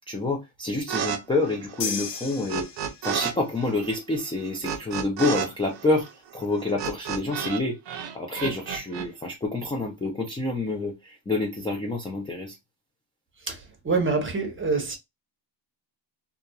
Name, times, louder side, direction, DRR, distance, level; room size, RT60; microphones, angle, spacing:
voice 1, 0.1-2.7 3.0-6.1 6.3-7.8 8.1-12.6, left 2 dB, 10° left, 0.3 m, -28 dB
sound 1, 0.9-1.2 1.4-3.3 3.6-7.6 7.9-9.1, right 8 dB, 60° right, 0.7 m, -31 dB
sound 2, 1.8-3.4, left 6 dB, 60° left, 0.7 m, -34 dB
voice 2, 13.4-15.0, right 4 dB, 25° right, 0.7 m, -26 dB
2.8 x 2.4 x 2.2 m
cardioid pair, 125°, 48 cm